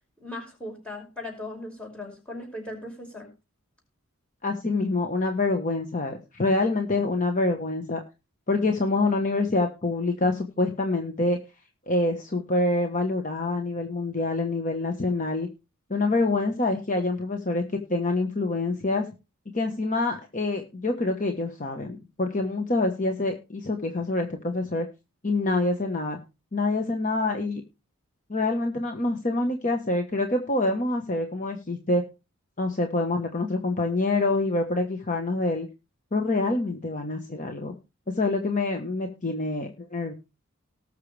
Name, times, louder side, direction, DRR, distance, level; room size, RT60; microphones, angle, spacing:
voice 1, 0.2-3.3, left 1 dB, 5° left, 1 dB, 5.5 m, -38 dB
voice 2, 4.4-8.0 8.5-11.4 11.9-15.5 15.9-17.6 17.9-19.1 19.5-24.9 25.2-26.2 26.5-27.6 28.3-32.1 32.6-35.7 36.1-37.7 38.1-40.1, left 2 dB, 35° left, 4 dB, 1.1 m, -26 dB
19.0 x 6.6 x 3.3 m, 0.28 s
head